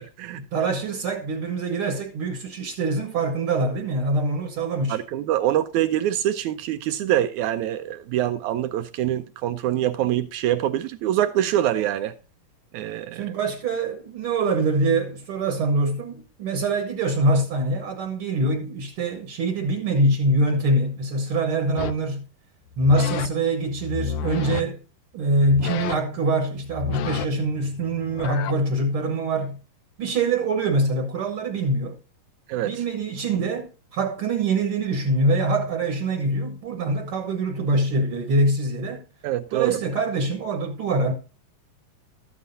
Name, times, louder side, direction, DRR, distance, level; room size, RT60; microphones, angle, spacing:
voice 1, 0.3-5.0 13.1-22.3 22.8-24.8 25.1-29.6 30.0-32.0 32.6-39.0 39.5-41.1, right 2 dB, 60° right, 1.5 m, -24 dB
voice 2, 4.9-12.1 12.7-13.3 32.5-32.8 39.2-39.8, right 12 dB, 85° right, 1.7 m, -24 dB
sound 1, 21.8-22.1 22.7-23.3 23.7-24.6 25.4-26.2 26.6-28.6, left 9 dB, 80° left, 1.8 m, -32 dB
13.0 x 9.4 x 2.7 m
omnidirectional pair, 4.0 m